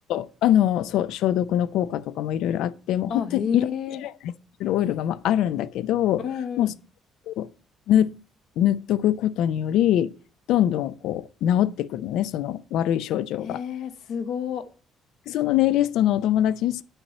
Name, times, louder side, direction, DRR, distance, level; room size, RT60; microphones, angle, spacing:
voice 1, 0.1-3.7 4.0-4.1 4.6-6.2 6.6-6.7 7.3-7.5 7.9-8.1 8.6-10.1 10.5-13.6 15.3-16.8, left 11 dB, 80° left, 0.5 m, -23 dB
voice 2, 3.1-4.0 6.2-6.7 13.4-14.6, left 7 dB, 60° left, 1.0 m, -30 dB
9.0 x 4.2 x 6.7 m
cardioid pair, 150°, 0 cm